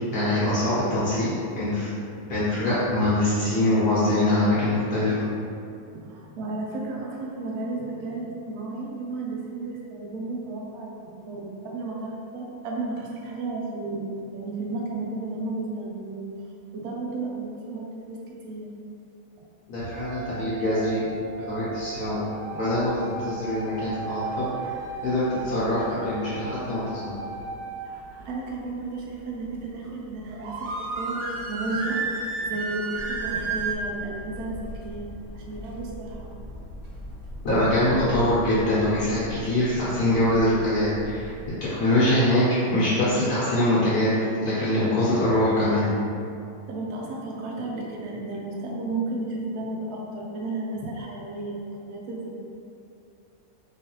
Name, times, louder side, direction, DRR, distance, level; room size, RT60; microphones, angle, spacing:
voice 1, 0.1-1.9 2.2-5.3 19.7-21.1 21.5-22.2 22.5-24.5 25.0-27.1 37.4-41.3 41.6-44.1 44.4-45.9, left 1 dB, 70° left, -10 dB, 1.2 m, -23 dB
voice 2, 5.9-16.2 16.7-18.2 18.4-18.7 28.2-35.0 35.3-36.3 46.7-52.3, right 2 dB, 75° right, -2 dB, 1.0 m, -33 dB
sound 1, 19.8-33.8, right 4 dB, 90° right, 1.2 m, -34 dB
sound 2, 32.9-41.5, equal, 55° right, 1.2 m, -40 dB
3.1 x 3.1 x 2.9 m, 2.6 s
omnidirectional pair, 1.8 m